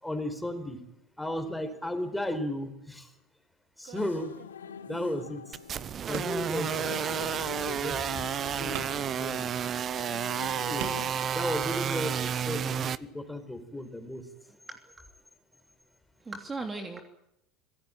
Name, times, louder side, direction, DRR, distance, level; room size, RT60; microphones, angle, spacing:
voice 1, 0.0-0.8 1.2-3.1 3.8-4.3 4.9-5.6 6.1-9.5 10.7-11.0 11.3-14.3, left 1 dB, 5° left, 9 dB, 4.7 m, -35 dB
sound 1, 3.8-4.8 6.1-6.6 7.9-8.0 8.7-9.2 10.0-10.1 10.8-11.3, right 10 dB, 60° right, 2.7 m, -41 dB
sound 2, 3.9-11.1, left 7 dB, 90° left, 1.1 m, -44 dB
sound 3, 5.5-13.0, right 8 dB, 40° right, 0.9 m, -31 dB
voice 2, 11.9-12.2 14.7-14.9 16.2-17.0, right 3 dB, 20° right, 4 dB, 3.0 m, -38 dB
25.5 x 17.5 x 9.1 m, 0.83 s
hypercardioid pair, 80°, 0 cm